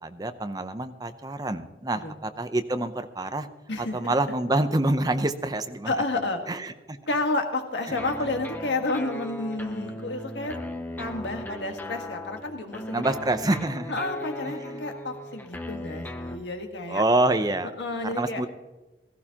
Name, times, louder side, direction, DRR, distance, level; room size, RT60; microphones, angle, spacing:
voice 1, 0.0-3.5 3.8-5.9 6.5-7.0 7.9-8.3 12.9-13.9 14.5-14.9 16.9-17.7 18.1-18.5, right 2 dB, 20° right, 9 dB, 0.6 m, -27 dB
voice 2, 3.7-4.1 5.8-6.4 7.1-10.6 11.0-13.0 13.9-17.0 17.8-18.4, left 2 dB, 75° left, 4 dB, 1.6 m, -30 dB
sound 1, 7.9-16.4, left 1 dB, 10° left, 0.8 m, -38 dB
16.5 x 14.5 x 2.9 m, 1.1 s
head